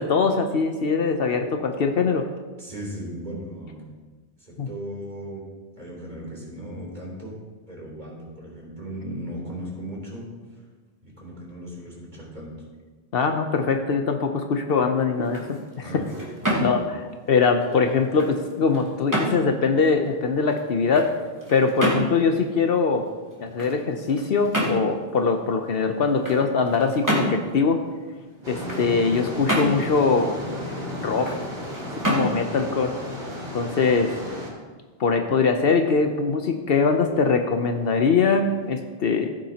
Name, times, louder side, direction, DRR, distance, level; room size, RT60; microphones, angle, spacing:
voice 1, 0.0-2.3 4.6-4.7 13.1-16.0 16.6-21.1 21.5-23.1 23.4-27.8 28.5-30.4 31.0-31.4 32.0-32.9 33.5-34.2 35.0-39.3, left 4 dB, 70° left, 5 dB, 0.9 m, -22 dB
voice 2, 2.6-3.9 4.4-5.5 5.7-7.4 7.7-10.3 11.2-12.6 15.8-16.1 16.4-16.9, equal, 45° right, -4 dB, 3.5 m, -37 dB
sound 1, 15.1-34.0, equal, 20° right, 2.4 m, -31 dB
sound 2, 28.4-34.5, left 1 dB, 75° right, 2.9 m, -34 dB
15.5 x 9.2 x 2.9 m, 1.3 s
omnidirectional pair, 1.0 m